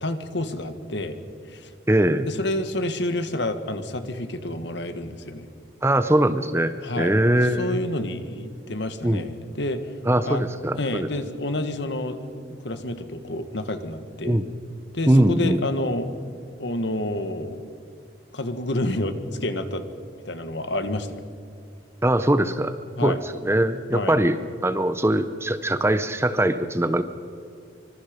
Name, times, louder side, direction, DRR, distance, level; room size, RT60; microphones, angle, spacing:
voice 1, 0.0-1.2 1.5-1.7 2.3-5.5 6.8-10.0 10.2-10.5 10.8-12.2 12.6-14.4 14.9-16.1 16.6-17.7 18.3-19.8 20.2-21.3 23.0-23.2 23.9-24.2, left 1 dB, 65° left, 9 dB, 1.7 m, -29 dB
voice 2, 1.9-2.3 5.8-7.8 9.0-9.2 10.1-11.1 14.2-14.5 15.1-15.6 22.0-22.7 23.0-27.0, right 1 dB, 15° right, 11 dB, 0.7 m, -21 dB
26.0 x 25.0 x 5.2 m, 2.4 s
head